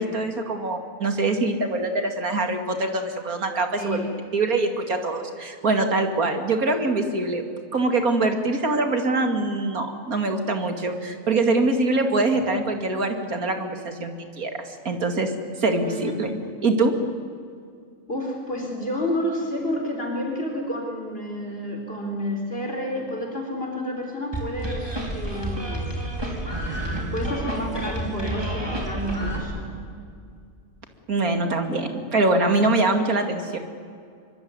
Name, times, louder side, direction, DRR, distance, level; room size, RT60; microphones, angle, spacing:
voice 1, 0.0-4.0 4.3-7.4 7.7-15.3 15.6-16.3 16.6-16.9 31.1-33.6, right 2 dB, 90° right, 6 dB, 2.9 m, -24 dB
voice 2, 3.8-4.1 15.8-16.3 18.1-24.9 25.1-26.0 27.1-29.7, equal, 40° left, 0 dB, 4.1 m, -30 dB
sound 1, 24.3-29.4, right 1 dB, 15° right, 5.2 m, -29 dB
24.0 x 24.0 x 9.7 m, 2.3 s
omnidirectional pair, 1.5 m